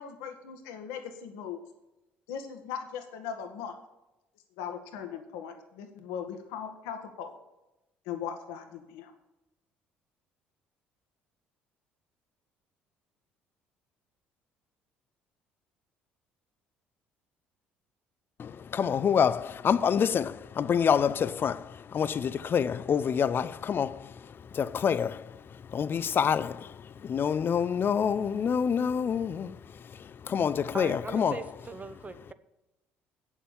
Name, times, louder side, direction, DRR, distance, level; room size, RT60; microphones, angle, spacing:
voice 1, 0.0-1.6 2.3-3.7 4.6-7.3 8.0-9.1, left 8 dB, 80° left, 1.6 m, -39 dB
voice 2, 18.4-31.4, left 7 dB, 45° left, 0.6 m, -27 dB
voice 3, 30.7-32.3, right 4 dB, 30° right, 1.0 m, -39 dB
8.6 x 7.2 x 7.1 m
hypercardioid pair, 60°, 5 cm